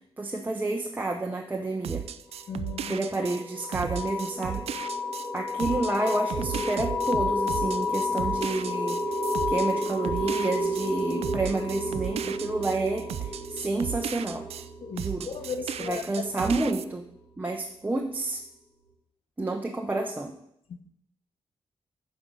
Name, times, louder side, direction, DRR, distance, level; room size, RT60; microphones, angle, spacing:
voice 1, 0.2-2.0 2.9-4.6 5.3-9.0 9.5-14.4 15.0-15.3 15.9-17.0 17.4-18.4 19.4-20.3, right 2 dB, 15° right, 1 dB, 0.8 m, -29 dB
sound 1, 1.8-14.7 15.0-16.8, right 10 dB, 80° right, 0.4 m, -35 dB
voice 2, 2.5-3.0 14.8-16.3 20.7-20.8, left 6 dB, 65° left, 8 dB, 1.0 m, -36 dB
sound 2, 2.7-17.1, left 2 dB, 40° left, 2.6 m, -31 dB
9.2 x 5.3 x 6.2 m, 0.74 s
wide cardioid pair, 135°, 10 cm